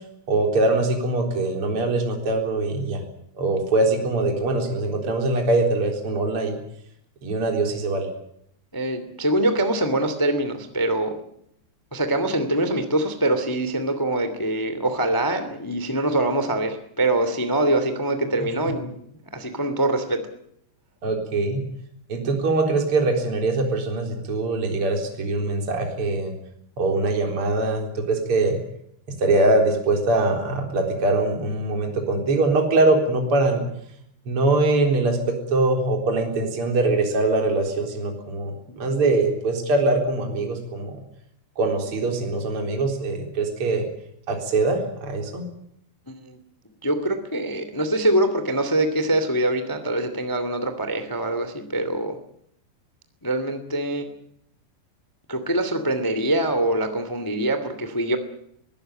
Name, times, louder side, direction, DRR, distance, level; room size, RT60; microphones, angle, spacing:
voice 1, 0.3-3.0 3.3-6.6 7.2-8.1 21.0-21.6 22.1-26.3 26.8-28.6 29.2-33.7 34.3-41.0 41.6-43.9 44.3-45.4, right 2 dB, 30° right, 2 dB, 4.4 m, -22 dB
voice 2, 8.7-11.2 11.9-18.9 19.3-20.3 46.1-46.4 46.8-52.2 53.2-54.1 55.3-58.2, right 1 dB, 15° left, 9 dB, 0.7 m, -24 dB
23.0 x 17.0 x 9.0 m, 0.73 s
omnidirectional pair, 5.1 m